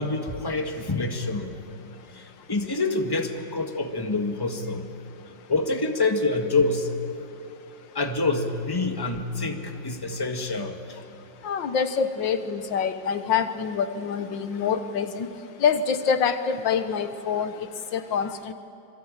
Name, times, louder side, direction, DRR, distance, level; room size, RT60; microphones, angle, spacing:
voice 1, 0.0-1.6 2.1-4.9 5.5-6.9 7.9-11.0, left 3 dB, 15° left, 4 dB, 1.6 m, -27 dB
voice 2, 11.4-15.3 15.6-17.7 17.9-18.5, left 6 dB, 80° left, 9 dB, 1.8 m, -26 dB
27.0 x 23.5 x 9.0 m, 2.5 s
omnidirectional pair, 2.0 m